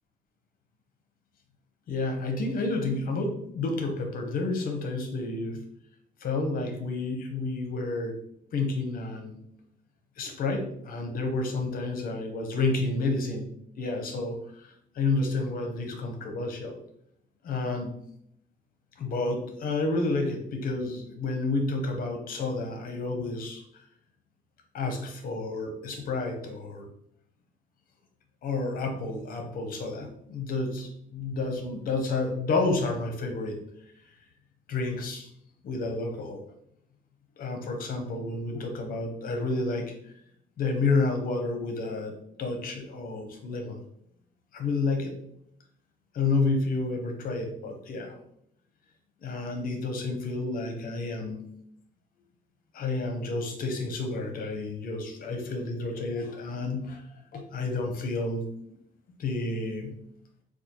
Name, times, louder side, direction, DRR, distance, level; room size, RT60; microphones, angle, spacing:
voice 1, 1.9-5.6 6.2-8.1 8.5-9.4 10.2-13.5 13.8-14.7 14.9-16.8 17.4-17.9 19.0-23.6 24.7-26.9 28.4-33.6 34.7-35.3 35.6-36.4 37.4-39.9 40.6-43.8 44.5-45.1 46.1-48.2 49.2-51.4 52.7-57.0 57.3-58.4 59.2-59.9, left 3 dB, 65° left, 4 dB, 0.8 m, -30 dB
4.3 x 2.4 x 2.8 m, 0.70 s
cardioid pair, 130°, 16 cm